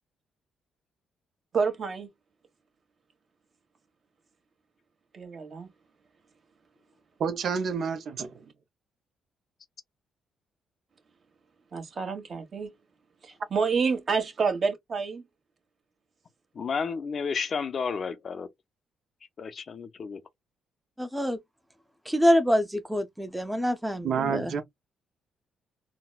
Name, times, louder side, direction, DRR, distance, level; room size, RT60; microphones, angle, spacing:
voice 1, 1.5-2.1 5.1-5.7 11.7-12.7 13.2-15.2, right 5 dB, 45° right, 1.2 m, -28 dB
voice 2, 7.2-8.4 24.0-24.6, right 6 dB, 60° right, 0.6 m, -29 dB
voice 3, 16.5-18.5 19.4-20.2, left 5 dB, 50° left, 0.5 m, -31 dB
voice 4, 21.0-21.4 22.1-24.6, equal, 5° right, 0.6 m, -25 dB
4.0 x 2.1 x 2.3 m
cardioid pair, 90°, 0 cm